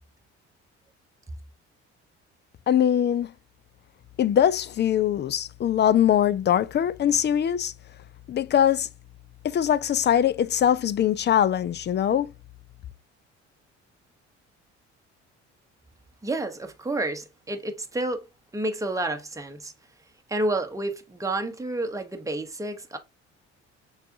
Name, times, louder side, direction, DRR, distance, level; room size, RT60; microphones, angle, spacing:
voice 1, 2.7-3.3 4.2-7.7 8.3-8.9 9.4-12.3, left 10 dB, 30° left, 0.4 m, -22 dB
voice 2, 16.2-18.2 18.5-19.7 20.3-23.0, right 2 dB, 10° right, 0.9 m, -30 dB
6.7 x 2.4 x 2.6 m
hypercardioid pair, 50°, 34 cm